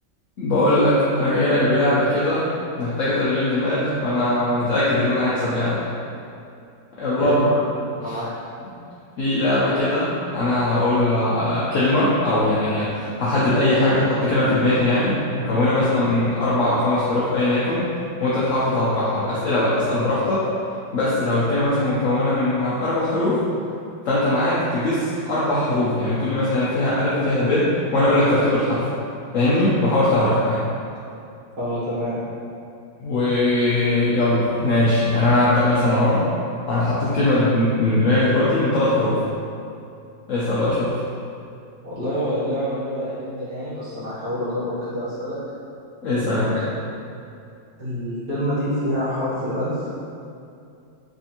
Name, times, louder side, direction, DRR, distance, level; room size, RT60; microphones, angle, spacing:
voice 1, 0.4-2.5 2.8-5.8 7.0-7.3 8.0-8.2 9.2-17.8 18.2-20.4 20.9-23.4 24.0-27.6 27.9-28.8 29.3-30.6 33.0-36.2 36.7-39.2 40.3-40.9 46.0-46.5, left 1 dB, 75° left, -9 dB, 0.7 m, -20 dB
voice 2, 7.2-7.6 7.9-8.3 13.8-14.0 31.6-32.2 41.8-45.4 46.2-46.6 47.8-49.9, equal, 65° right, -13 dB, 1.5 m, -27 dB
3.6 x 3.4 x 2.8 m, 2.5 s
omnidirectional pair, 2.1 m